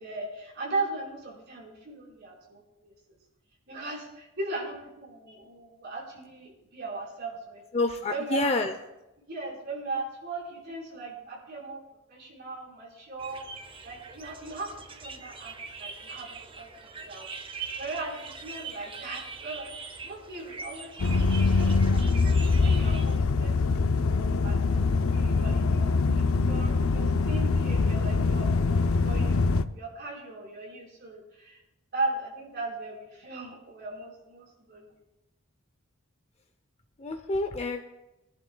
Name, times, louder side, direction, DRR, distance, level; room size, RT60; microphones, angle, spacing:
voice 1, 0.0-2.9 3.7-7.6 8.1-8.5 9.2-11.8 12.1-13.4 13.8-14.7 15.0-17.3 17.8-19.7 20.0-24.8 25.1-25.9 26.3-29.5 29.8-31.6 31.9-34.9, right 2 dB, 50° right, -3 dB, 4.5 m, -38 dB
voice 2, 7.7-8.7 37.0-37.9, left 2 dB, 30° left, 5 dB, 0.6 m, -28 dB
sound 1, 13.2-23.2, right 5 dB, 25° right, 0.6 m, -42 dB
sound 2, 21.0-29.6, left 4 dB, 85° left, 0.5 m, -24 dB
22.5 x 11.0 x 2.3 m, 0.94 s
head